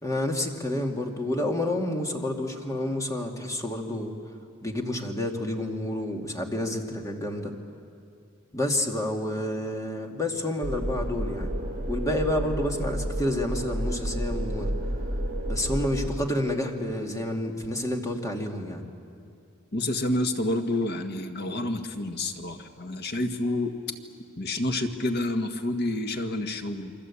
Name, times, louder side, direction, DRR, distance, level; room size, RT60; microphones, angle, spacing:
voice 1, 0.0-4.2 4.6-7.5 8.5-11.5 11.9-14.8 15.5-18.8, left 1 dB, 15° left, 2 dB, 2.3 m, -29 dB
sound 1, 10.6-16.1, equal, 45° right, 4.2 m, -31 dB
voice 2, 19.7-23.7 24.4-26.9, left 1 dB, 55° left, 5 dB, 1.7 m, -29 dB
28.5 x 24.0 x 8.5 m, 2.5 s
head